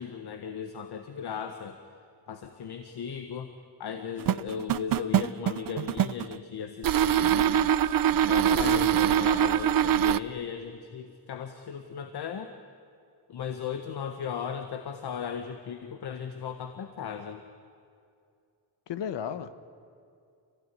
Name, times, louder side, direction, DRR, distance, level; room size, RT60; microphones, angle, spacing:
voice 1, 0.0-1.8 2.3-3.5 3.8-7.7 8.2-12.5 13.3-17.4, left 7 dB, 65° left, 7 dB, 1.5 m, -37 dB
sound 1, 4.2-6.3 6.8-10.2, right 10 dB, 55° right, 0.7 m, -23 dB
voice 2, 8.6-9.0 18.9-19.5, left 9 dB, 85° left, 12 dB, 1.4 m, -33 dB
28.5 x 16.0 x 10.0 m, 2.4 s
cardioid pair, 100°, 42 cm